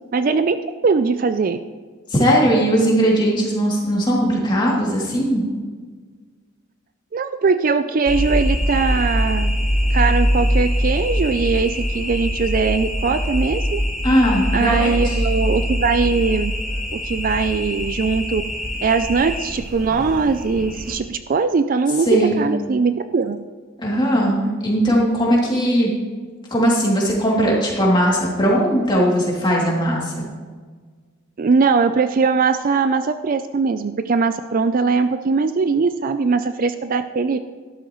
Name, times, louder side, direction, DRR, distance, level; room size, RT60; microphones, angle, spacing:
voice 1, 0.1-0.6 0.8-1.6 7.1-9.5 9.9-13.8 14.5-16.5 16.9-18.4 18.8-23.4 31.4-37.4, right 4 dB, 40° right, 10 dB, 0.4 m, -20 dB
voice 2, 2.1-5.4 14.0-15.1 22.1-22.4 23.8-25.9 26.5-30.1, equal, 20° left, -4 dB, 2.7 m, -18 dB
sound 1, 8.1-20.9, equal, ahead, 2.1 m, -23 dB
12.5 x 12.0 x 3.1 m, 1.5 s
head